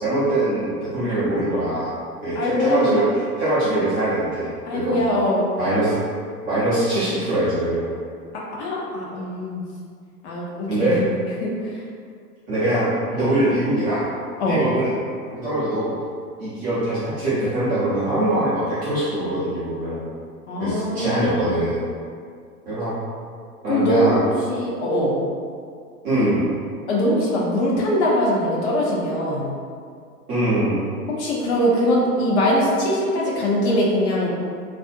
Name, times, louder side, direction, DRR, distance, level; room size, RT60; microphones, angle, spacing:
voice 1, 0.0-1.9 2.2-3.0 3.4-5.1 5.6-6.0 6.4-7.9 10.7-11.0 12.5-14.1 14.4-15.0 15.3-15.9 16.4-20.0 20.6-21.8 22.7-22.9 23.6-24.3 26.0-26.4 30.3-30.9, right 1 dB, 20° right, -13 dB, 0.4 m, -22 dB
voice 2, 2.3-3.0 4.7-5.5 8.6-9.6 10.2-11.0 11.4-11.5 14.4-14.6 20.5-21.5 23.7-24.1 24.5-25.2 26.9-29.5 31.2-34.3, equal, 45° left, -4 dB, 0.6 m, -22 dB
2.5 x 2.1 x 2.5 m, 2.1 s
hypercardioid pair, 115°, 47 cm